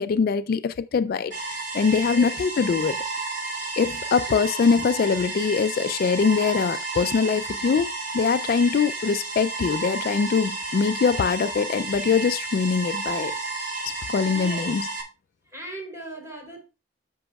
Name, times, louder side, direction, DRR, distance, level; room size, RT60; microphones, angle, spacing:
voice 1, 0.0-3.0 3.8-13.3 13.8-14.9, left 5 dB, 55° left, 0.3 m, -23 dB
sound 1, 1.3-15.0, right 3 dB, 70° right, 3.0 m, -32 dB
voice 2, 2.1-2.5 14.2-14.8 15.5-16.6, right 1 dB, 15° right, 3.2 m, -39 dB
13.0 x 6.1 x 2.3 m
head